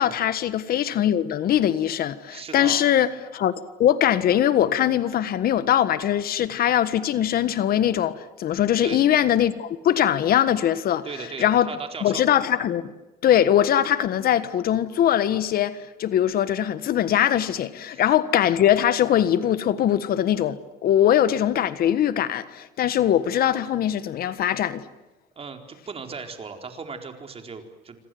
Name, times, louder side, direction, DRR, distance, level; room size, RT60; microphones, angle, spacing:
voice 1, 0.0-3.5 3.8-11.1 11.4-11.7 12.0-12.9 13.2-24.8, left 10 dB, 60° left, 1.5 m, -21 dB
voice 2, 2.3-2.8 8.8-9.0 11.0-12.2 17.9-18.0 25.4-28.0, right 5 dB, 35° right, 4.3 m, -37 dB
27.0 x 26.0 x 7.9 m
cardioid pair, 110°, 17 cm